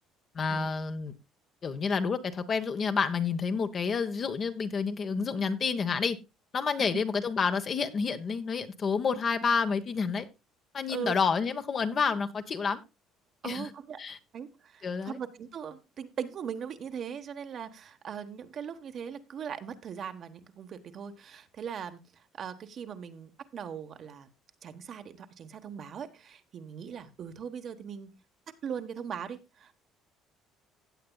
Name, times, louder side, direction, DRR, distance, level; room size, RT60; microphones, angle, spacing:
voice 1, 0.3-1.1 1.6-6.2 6.5-10.3 10.7-12.8 13.4-13.7 14.0-14.2 14.8-15.2, left 5 dB, 35° left, 1.1 m, -29 dB
voice 2, 13.4-14.0 14.3-24.3 24.6-28.1 28.6-29.7, right 7 dB, 45° right, 1.2 m, -40 dB
16.0 x 8.5 x 2.3 m
cardioid pair, 125°, 0 cm